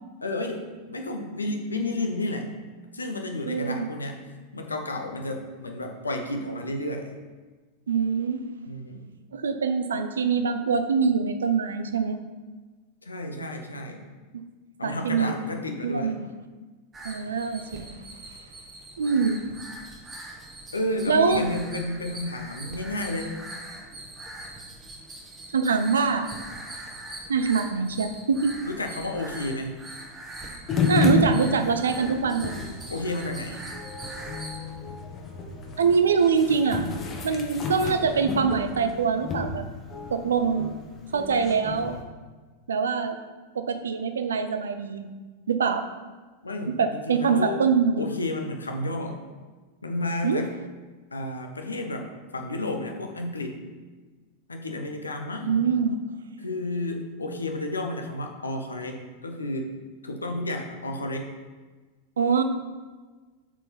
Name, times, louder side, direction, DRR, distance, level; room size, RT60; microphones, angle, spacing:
voice 1, 0.2-2.5 2.9-4.2 4.5-7.1 8.7-9.1 13.0-14.0 14.8-16.2 20.7-23.4 28.6-29.8 32.9-33.6 46.4-47.6 48.0-49.2 49.8-50.5 51.1-53.6 54.5-55.6 56.4-59.8 60.0-61.3, left 1 dB, 75° left, 4 dB, 1.0 m, -31 dB
voice 2, 3.5-3.9 7.9-8.4 9.3-12.2 14.8-15.5 15.8-16.3 17.0-17.9 19.0-19.4 21.1-21.4 25.5-26.3 27.3-28.6 30.9-32.6 35.8-36.9 37.2-39.6 40.1-40.7 41.1-41.9 42.7-43.2 43.5-45.1 45.5-45.8 46.7-48.1 50.2-50.4 55.5-56.0 62.2-62.4, right 5 dB, 70° right, 9 dB, 0.6 m, -24 dB
sound 1, 16.9-34.6, right 1 dB, 20° right, 1.4 m, -42 dB
sound 2, 30.7-42.0, left 3 dB, 30° left, 1.2 m, -31 dB
7.1 x 4.5 x 5.6 m, 1.3 s
figure-of-eight pair, 90°, 0 cm